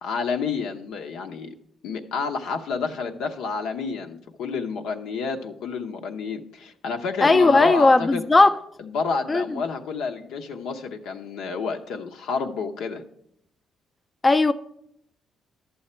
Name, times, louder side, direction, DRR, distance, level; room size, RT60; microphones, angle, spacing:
voice 1, 0.0-1.5 1.8-8.2 8.8-13.0, left 5 dB, 85° left, 0.8 m, -29 dB
voice 2, 7.2-8.5 9.3-9.6 14.2-14.5, left 3 dB, 25° left, 0.4 m, -17 dB
11.5 x 7.1 x 4.4 m
cardioid pair, 90°, 0 cm